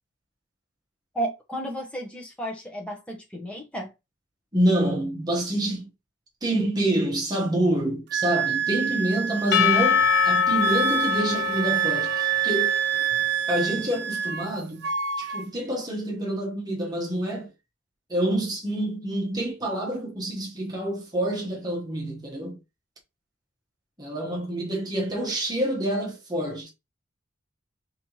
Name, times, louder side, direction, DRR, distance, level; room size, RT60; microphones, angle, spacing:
voice 1, 1.1-3.9, right 1 dB, 5° left, 0.9 m, -33 dB
voice 2, 4.5-5.9 6.4-12.8 13.5-14.9 15.2-17.5 18.1-22.6 24.0-26.7, right 1 dB, 20° right, 1.0 m, -27 dB
Wind instrument woodwind instrument, 8.1-14.5 14.8-15.4, right 10 dB, 55° right, 0.3 m, -27 dB
Percussion / Church bell, 9.5-13.5, left 7 dB, 50° left, 0.3 m, -24 dB
4.2 x 2.8 x 3.0 m
head